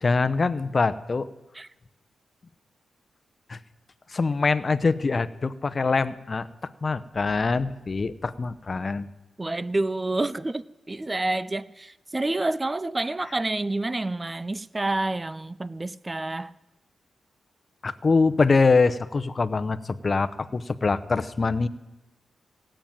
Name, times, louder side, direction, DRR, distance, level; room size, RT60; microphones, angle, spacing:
voice 1, 0.0-1.3 3.5-3.6 4.1-6.5 6.8-9.1 17.8-21.7, left 4 dB, 40° left, 0.8 m, -24 dB
voice 2, 9.4-10.6 10.9-16.5, right 2 dB, 20° right, 0.5 m, -28 dB
16.5 x 8.9 x 8.9 m
cardioid pair, 85°, 0 cm